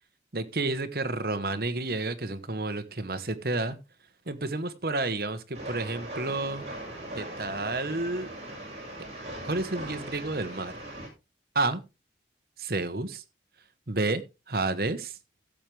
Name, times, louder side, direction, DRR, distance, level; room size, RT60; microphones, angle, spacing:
voice 1, 0.3-3.8 4.3-6.6 7.1-8.3 9.4-10.7 11.5-11.8 12.6-13.2 13.9-15.2, right 2 dB, 55° right, 1.2 m, -30 dB
Train, 5.5-11.1, right 1 dB, 35° right, 5.6 m, -40 dB
15.5 x 7.7 x 3.3 m
head